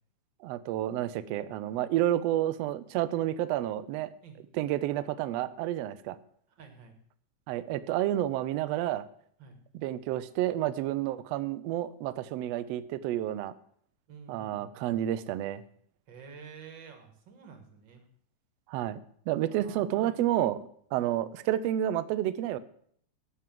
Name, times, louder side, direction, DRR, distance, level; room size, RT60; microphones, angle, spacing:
voice 1, 0.4-4.1 4.5-6.2 7.5-9.0 9.8-13.5 14.3-15.6 18.7-22.6, right 13 dB, 85° right, 14 dB, 1.4 m, -30 dB
voice 2, 6.5-7.0 9.4-9.6 14.1-14.8 16.1-18.0 19.4-20.2 21.0-21.1, right 5 dB, 45° right, 6 dB, 1.8 m, -50 dB
11.0 x 7.0 x 7.5 m, 0.64 s
omnidirectional pair, 3.6 m